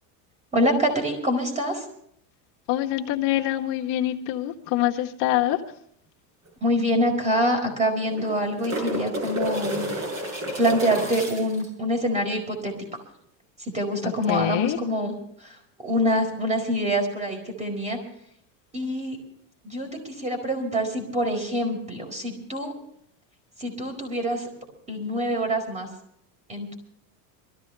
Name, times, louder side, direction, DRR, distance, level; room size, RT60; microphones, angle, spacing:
voice 1, 0.5-1.8 6.6-9.8 10.6-13.0 13.6-18.0 18.7-19.2 19.6-22.7 23.6-24.5 24.9-25.9 26.5-26.7, equal, 15° right, 4 dB, 4.6 m, -25 dB
voice 2, 2.7-5.6 14.0-14.8, left 14 dB, 60° left, 1 dB, 1.7 m, -25 dB
sound 1, 6.5-6.6 6.8-6.9 8.0-11.7 14.2-14.3, equal, 35° right, 6.3 m, -30 dB
23.5 x 14.5 x 3.4 m, 0.69 s
supercardioid pair, 145°, 46 cm